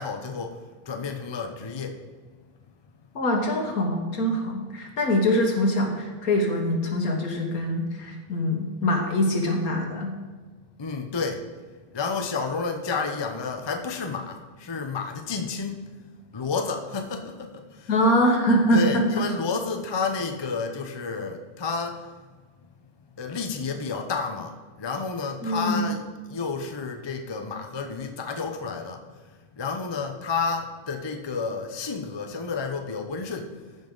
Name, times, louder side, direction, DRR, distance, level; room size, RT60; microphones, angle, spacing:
voice 1, 0.0-2.0 10.8-11.5 11.9-15.8 16.3-17.9 18.7-22.1 23.2-29.0 29.6-33.5, left 4 dB, 40° left, 5 dB, 0.3 m, -30 dB
voice 2, 3.2-10.1 17.9-19.1 25.4-25.9, equal, 65° left, 2 dB, 1.8 m, -23 dB
14.5 x 5.4 x 3.9 m, 1.4 s
omnidirectional pair, 1.6 m